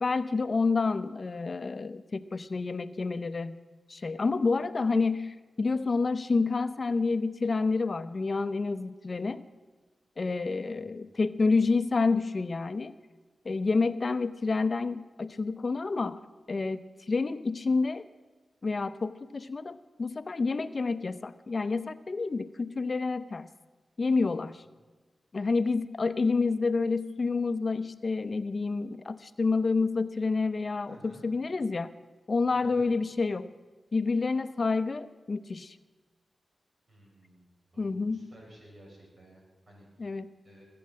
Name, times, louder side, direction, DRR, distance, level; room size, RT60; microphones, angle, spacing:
voice 1, 0.0-3.6 3.9-9.4 10.2-12.9 13.4-16.2 16.5-18.0 18.6-23.5 24.0-24.6 25.3-31.9 32.3-33.5 33.9-35.8 37.8-38.3 40.0-40.3, left 4 dB, 55° left, 13 dB, 0.6 m, -29 dB
voice 2, 30.9-31.3 32.5-32.9 36.9-39.9 40.4-40.7, right 1 dB, 65° right, -1 dB, 6.2 m, -54 dB
20.0 x 8.7 x 7.5 m, 1.3 s
cardioid pair, 45°, 0 cm